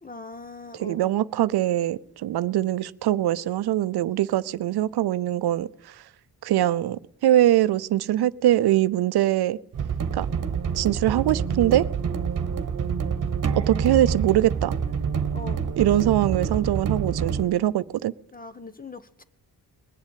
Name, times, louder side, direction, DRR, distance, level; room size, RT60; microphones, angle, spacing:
voice 1, 0.0-1.2 15.3-15.7 18.3-19.2, left 3 dB, 20° left, 1.0 m, -40 dB
voice 2, 0.8-5.9 6.4-9.6 10.1-10.3 10.7-11.9 13.7-14.7 15.8-18.1, right 13 dB, 80° right, 0.6 m, -22 dB
sound 1, 9.7-17.5, right 6 dB, 55° right, 1.2 m, -27 dB
20.5 x 7.3 x 9.1 m
cardioid pair, 80°, 38 cm